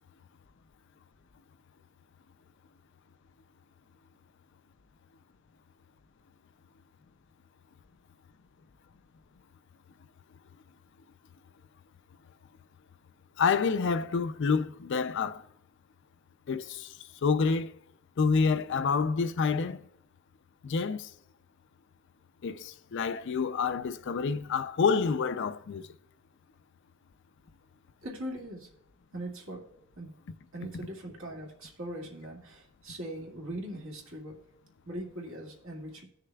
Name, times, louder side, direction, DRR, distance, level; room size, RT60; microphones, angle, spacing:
voice 1, 13.4-15.4 16.5-17.0 17.2-17.8 18.2-19.9 20.6-21.1 22.4-25.9, left 5 dB, 55° left, 0.4 m, -28 dB
voice 2, 28.0-28.7 29.1-29.6 30.0-30.1 30.5-34.4 34.9-36.0, right 1 dB, 70° right, 1.9 m, -40 dB
18.0 x 6.6 x 2.3 m
head